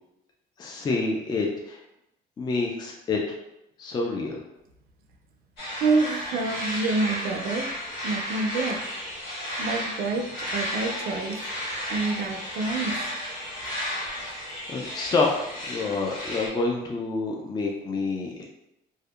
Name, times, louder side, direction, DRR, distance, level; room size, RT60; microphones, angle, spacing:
voice 1, 0.6-1.8 2.4-3.4 3.8-4.4 13.6-14.1 14.7-18.4, left 3 dB, 25° left, 0 dB, 0.3 m, -28 dB
sound 1, 5.6-16.5, equal, 85° left, 1.2 m, -33 dB
voice 2, 5.8-7.7 8.0-8.8 9.6-11.4 11.9-13.0, right 3 dB, 60° right, 4 dB, 0.4 m, -27 dB
2.6 x 2.1 x 2.3 m, 0.86 s
cardioid pair, 110°, 17 cm